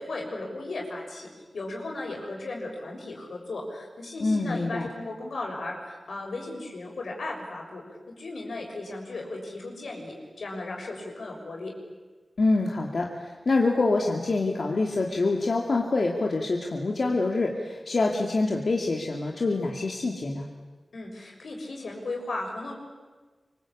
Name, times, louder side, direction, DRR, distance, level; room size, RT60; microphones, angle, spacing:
voice 1, 0.0-11.7 20.9-22.7, left 2 dB, 85° left, 1 dB, 6.6 m, -36 dB
voice 2, 4.2-4.9 12.4-20.5, left 3 dB, 60° left, 0 dB, 2.6 m, -26 dB
25.5 x 24.5 x 8.7 m, 1.3 s
wide cardioid pair, 75°, 0 cm